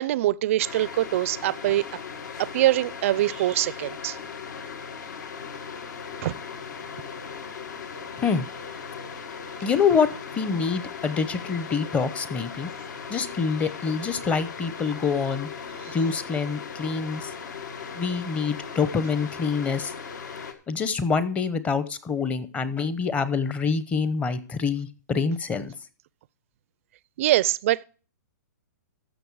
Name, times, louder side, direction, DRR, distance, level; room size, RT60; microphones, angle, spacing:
voice 1, 0.0-1.8 2.4-4.2 6.2-6.3 27.2-27.8, right 15 dB, 45° right, 0.4 m, -23 dB
sound 1, 0.6-20.5, left 6 dB, 75° left, 1.8 m, -38 dB
voice 2, 9.6-10.1 10.3-12.7 13.1-15.5 15.9-17.3 17.9-19.9 20.7-25.7, left 5 dB, 15° left, 0.7 m, -26 dB
14.0 x 6.7 x 4.7 m
hypercardioid pair, 150°, 10 cm